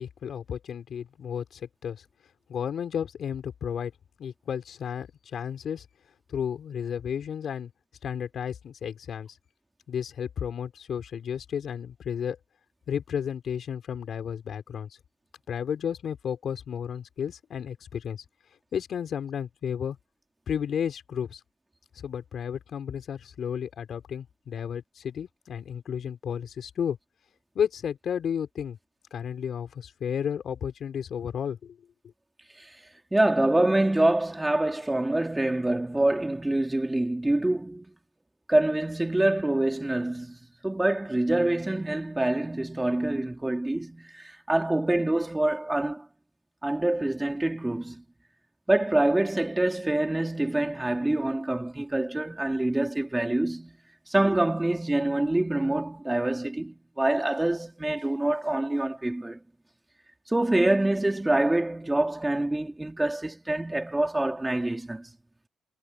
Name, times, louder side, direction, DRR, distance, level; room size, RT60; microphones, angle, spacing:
voice 1, 0.0-2.0 2.5-3.9 4.2-5.9 6.3-7.7 8.0-9.4 9.9-12.4 12.9-15.0 15.5-18.2 18.7-20.0 20.5-21.4 22.0-27.0 27.5-28.8 29.1-31.8, left 8 dB, 60° left, 4.3 m, -32 dB
voice 2, 33.1-37.9 38.5-40.4 40.6-46.1 46.6-48.0 48.7-53.8 54.1-59.4 60.3-65.1, right 1 dB, 10° right, 4.1 m, -26 dB
cardioid pair, 90°, 0 cm